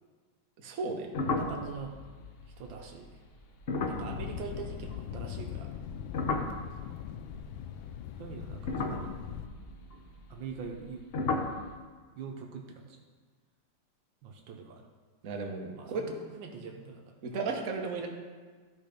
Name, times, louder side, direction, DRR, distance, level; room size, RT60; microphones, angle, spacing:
voice 1, 0.6-1.1 15.2-16.0 17.2-18.1, right 4 dB, 50° right, 1 dB, 1.3 m, -34 dB
sound 1, 1.1-5.5 5.7-7.9 8.5-10.9 11.1-11.7, left 3 dB, 70° left, 0.5 m, -35 dB
voice 2, 1.3-1.9 2.6-3.0 3.9-5.7 8.2-9.1 10.3-11.0 12.2-12.6 14.2-14.8 15.7-17.0, right 5 dB, 80° right, 2 dB, 1.6 m, -42 dB
Thunder, 3.8-9.5, left 9 dB, 90° left, 1.3 m, -41 dB
13.0 x 4.3 x 5.2 m, 1.5 s
omnidirectional pair, 2.1 m